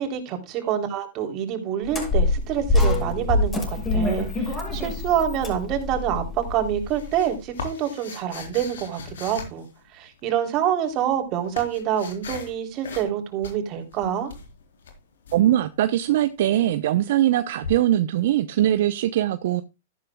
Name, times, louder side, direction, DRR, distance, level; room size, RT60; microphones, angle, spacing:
voice 1, 0.0-9.7 9.9-14.3, right 9 dB, 40° right, 3.4 m, -26 dB
sound 1, 1.9-7.1, left 2 dB, 20° left, 6.4 m, -25 dB
sound 2, 6.4-10.3 11.0-12.6 12.8-13.2 13.4-15.4 17.6-17.7, left 5 dB, 80° left, 3.9 m, -39 dB
voice 2, 15.3-19.6, right 12 dB, 65° right, 0.8 m, -21 dB
13.5 x 11.5 x 2.3 m
hypercardioid pair, 125°, 0 cm